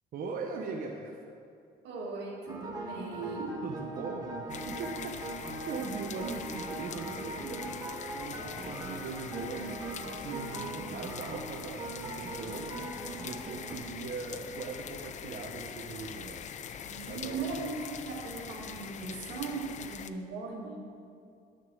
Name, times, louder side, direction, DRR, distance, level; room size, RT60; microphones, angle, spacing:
voice 1, 0.1-1.2 3.6-7.7 8.1-9.8 10.2-12.8 13.2-16.4 17.1-17.7, right 4 dB, 55° right, 0 dB, 1.0 m, -40 dB
voice 2, 1.8-3.6 16.8-20.8, right 4 dB, 85° right, -1 dB, 2.1 m, -38 dB
sound 1, 2.5-13.8, right 2 dB, 20° right, 1.8 m, -40 dB
sound 2, 4.5-20.1, left 8 dB, 45° left, 0.5 m, -43 dB
11.0 x 6.5 x 7.0 m, 2.4 s
cardioid pair, 110°, 17 cm